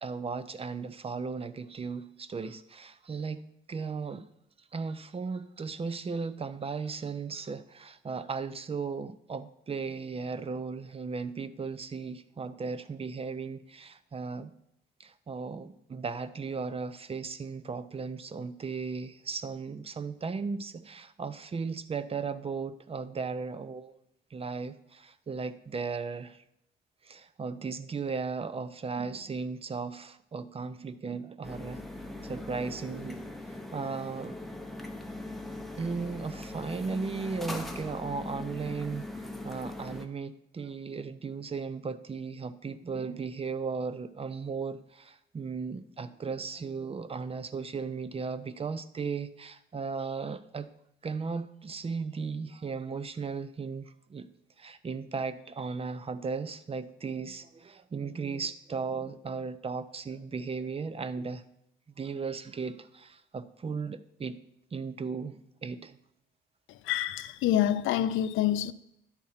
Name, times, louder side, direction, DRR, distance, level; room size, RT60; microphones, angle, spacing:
voice 1, 0.0-4.3 4.7-14.5 15.0-23.9 24.3-26.4 27.0-33.3 33.7-34.4 35.4-39.1 39.4-50.7 51.0-54.3 54.6-61.4 61.9-64.4 64.7-66.0, right 5 dB, 30° right, 0.6 m, -36 dB
sound 1, 31.4-40.1, left 2 dB, ahead, 0.9 m, -40 dB
voice 2, 66.9-68.7, left 11 dB, 85° left, 0.5 m, -27 dB
10.5 x 4.3 x 5.7 m
cardioid pair, 90°, 20 cm